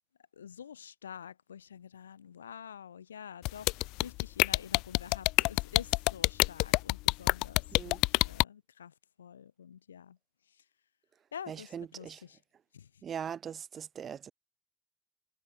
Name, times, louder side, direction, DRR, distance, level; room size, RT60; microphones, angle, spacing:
voice 1, 0.4-10.2 11.3-12.4 12.7-12.9, left 8 dB, 85° left, 4.3 m, -48 dB
sound 1, 3.5-8.4, left 22 dB, 70° left, 0.5 m, -25 dB
voice 2, 11.5-12.2 13.0-14.3, right 8 dB, 50° right, 6.0 m, -40 dB
figure-of-eight pair, 45°, 0 cm